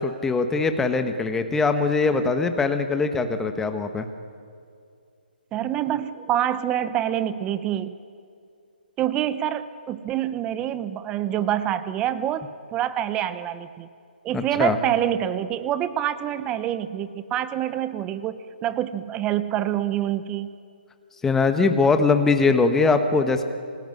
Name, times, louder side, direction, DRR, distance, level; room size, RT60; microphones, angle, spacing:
voice 1, 0.0-4.1 14.3-14.8 21.2-23.4, left 4 dB, 5° left, 7 dB, 1.4 m, -21 dB
voice 2, 5.5-8.0 9.0-13.9 14.2-20.6, right 11 dB, 15° right, 14 dB, 0.8 m, -26 dB
27.5 x 19.5 x 9.9 m, 2.4 s
hypercardioid pair, 155°, 6 cm